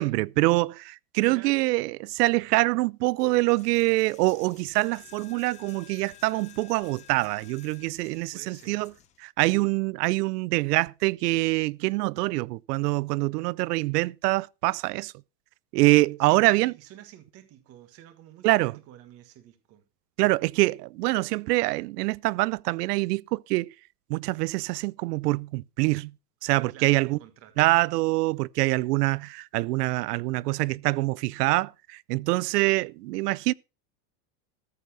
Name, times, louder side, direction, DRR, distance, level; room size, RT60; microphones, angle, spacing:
voice 1, 0.0-8.9 9.2-15.1 15.7-16.7 18.4-18.7 20.2-23.7 24.1-26.1 26.4-27.2 27.6-33.5, right 21 dB, 75° right, 0.6 m, -25 dB
voice 2, 1.2-1.6 8.3-8.8 16.2-19.8 26.7-27.7, right 12 dB, 30° right, 1.5 m, -50 dB
Coin (dropping), 3.2-9.2, left 12 dB, 15° left, 0.6 m, -53 dB
14.0 x 6.8 x 5.8 m
supercardioid pair, 175°, 47 cm